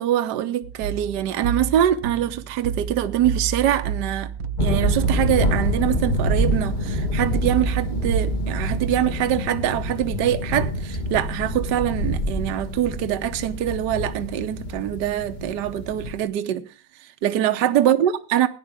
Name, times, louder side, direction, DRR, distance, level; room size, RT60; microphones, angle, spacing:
voice 1, 0.0-4.3 4.6-16.7 17.0-18.5, right 11 dB, 70° right, 1.4 m, -24 dB
sound 1, 0.6-9.1, right 6 dB, 85° right, 1.5 m, -30 dB
sound 2, 4.6-16.2, equal, 30° left, 1.3 m, -26 dB
17.5 x 10.5 x 3.4 m
omnidirectional pair, 2.0 m